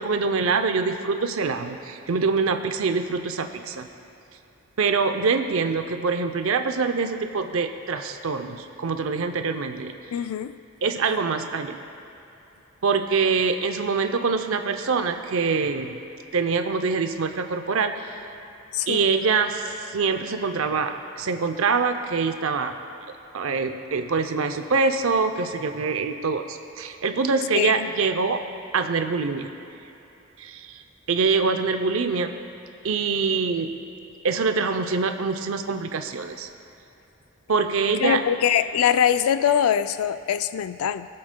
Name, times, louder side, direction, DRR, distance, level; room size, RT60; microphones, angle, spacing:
voice 1, 0.0-3.9 4.8-9.9 10.8-11.8 12.8-16.0 16.3-17.9 18.9-22.8 23.3-28.4 28.7-29.5 30.4-30.8 31.1-32.3 32.8-33.7 34.2-36.5 37.5-38.2, right 4 dB, 70° right, 7 dB, 0.5 m, -24 dB
voice 2, 10.1-10.5 18.7-19.1 27.5-27.9 38.0-41.1, left 9 dB, 85° left, 12 dB, 0.3 m, -23 dB
20.5 x 7.6 x 2.2 m, 2.9 s
head